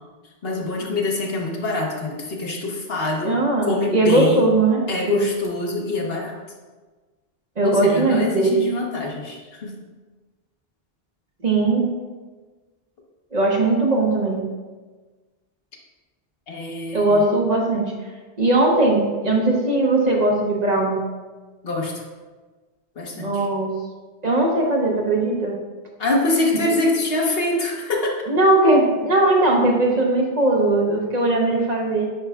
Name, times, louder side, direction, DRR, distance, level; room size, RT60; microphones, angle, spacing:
voice 1, 0.4-3.3 3.6-4.5 4.9-6.3 7.6-9.7 16.5-17.2 21.6-21.9 23.0-23.5 26.0-28.1, left 2 dB, 65° left, 0 dB, 1.2 m, -24 dB
voice 2, 3.2-5.2 7.6-8.6 11.4-11.9 13.3-14.4 16.9-17.8 18.4-21.0 23.1-23.8 24.2-25.6 26.6-26.7 28.3-32.1, right 2 dB, 45° right, -1 dB, 1.0 m, -19 dB
9.0 x 5.4 x 2.4 m, 1.3 s
omnidirectional pair, 1.1 m